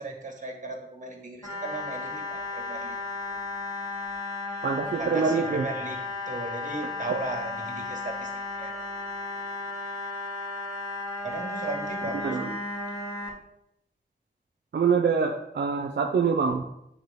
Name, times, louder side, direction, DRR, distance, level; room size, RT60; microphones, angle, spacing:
voice 1, 0.0-3.4 5.0-8.3 8.6-8.8 11.2-12.4, right 3 dB, 45° right, 1 dB, 1.8 m, -37 dB
sound 1, 1.4-13.3, left 3 dB, 20° left, 2.7 m, -34 dB
voice 2, 4.6-5.7 12.2-12.5 14.7-16.6, right 5 dB, 75° right, 3 dB, 0.5 m, -25 dB
9.1 x 4.0 x 3.6 m, 0.81 s
cardioid pair, 50°, 18 cm